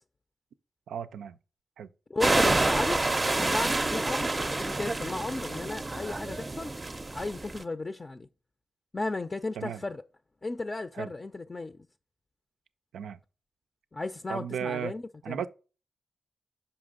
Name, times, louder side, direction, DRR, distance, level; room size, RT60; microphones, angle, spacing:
voice 1, 0.9-1.4 1.8-1.9 9.6-9.8 10.9-11.1 12.9-13.2 14.3-14.9 15.2-15.5, right 8 dB, 85° right, 0.3 m, -35 dB
voice 2, 2.1-3.0 3.2-6.7 7.1-8.3 8.9-10.0 10.4-11.9 13.9-15.4, left 2 dB, 40° left, 0.5 m, -34 dB
sound 1, 2.2-7.6, right 2 dB, 35° right, 0.5 m, -28 dB
5.6 x 5.0 x 3.8 m
supercardioid pair, 45°, 0 cm